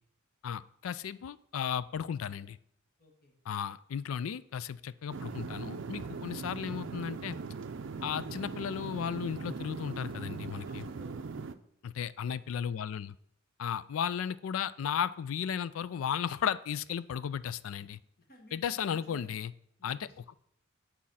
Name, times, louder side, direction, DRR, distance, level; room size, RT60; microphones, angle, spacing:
voice 1, 0.4-2.6 3.5-7.4 8.0-10.9 11.8-13.1 13.6-18.0 18.5-19.5 19.8-20.1, left 8 dB, 75° left, 17 dB, 0.4 m, -35 dB
voice 2, 3.0-3.3 10.6-11.5 18.2-19.4 19.8-20.2, left 2 dB, 50° left, 1 dB, 1.9 m, -55 dB
sound 1, 5.1-11.5, right 4 dB, 65° right, 0.5 m, -40 dB
8.6 x 4.3 x 5.6 m, 0.73 s
head